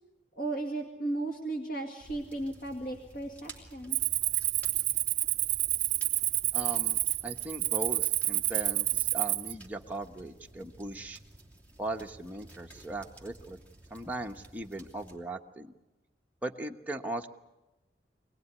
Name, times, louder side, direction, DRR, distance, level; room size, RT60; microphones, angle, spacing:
voice 1, 0.4-4.0, right 2 dB, 55° left, 3 dB, 2.1 m, -35 dB
sound 1, 2.0-15.2, right 1 dB, 10° left, 2.7 m, -53 dB
Cricket, 3.9-9.5, right 16 dB, 65° right, 0.8 m, -29 dB
voice 2, 6.5-11.2 11.8-13.6 13.9-15.7 16.4-17.3, right 2 dB, 10° right, 1 dB, 1.2 m, -38 dB
25.5 x 18.5 x 9.7 m, 1.0 s
head